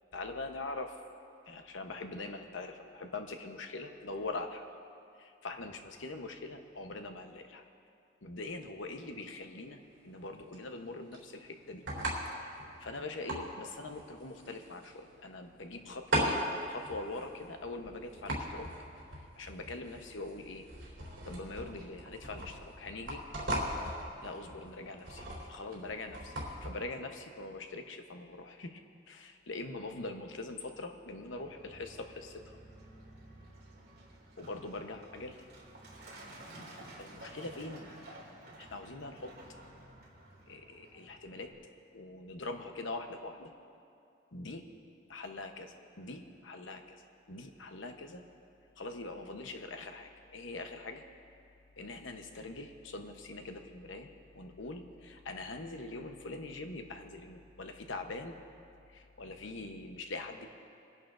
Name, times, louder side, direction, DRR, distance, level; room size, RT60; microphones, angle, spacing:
voice 1, 0.1-1.0 1.5-4.6 5.2-7.6 8.2-11.8 12.4-18.7 19.4-20.7 21.3-23.2 24.2-26.4 26.6-28.8 29.1-32.6 34.4-35.4 37.0-37.8 38.6-39.3 40.5-41.5 41.9-43.5 44.3-44.6 45.1-47.0 47.3-48.2 48.8-51.0 51.8-54.1 54.3-58.4 58.9-60.5, left 2 dB, 80° left, 5 dB, 0.9 m, -43 dB
sound 1, 9.0-26.7, right 1 dB, 70° right, 3.5 m, -39 dB
Truck, 31.3-41.5, right 1 dB, 50° right, 2.4 m, -52 dB
27.0 x 11.0 x 2.5 m, 2.5 s
head